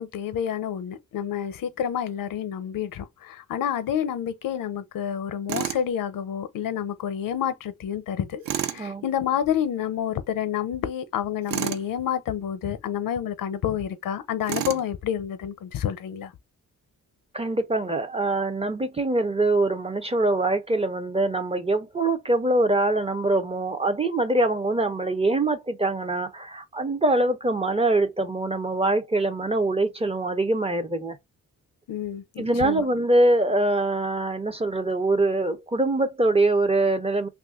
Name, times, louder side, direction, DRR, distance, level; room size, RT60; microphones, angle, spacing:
voice 1, 0.0-16.3 31.9-32.8, left 9 dB, 80° left, 0.6 m, -29 dB
Tools, 5.5-5.8 8.4-8.8 11.5-11.9 14.5-14.9, right 11 dB, 80° right, 0.6 m, -29 dB
voice 2, 17.3-31.2 32.4-37.3, right 2 dB, 20° right, 0.4 m, -23 dB
3.0 x 2.4 x 3.5 m
wide cardioid pair, 160°, 33 cm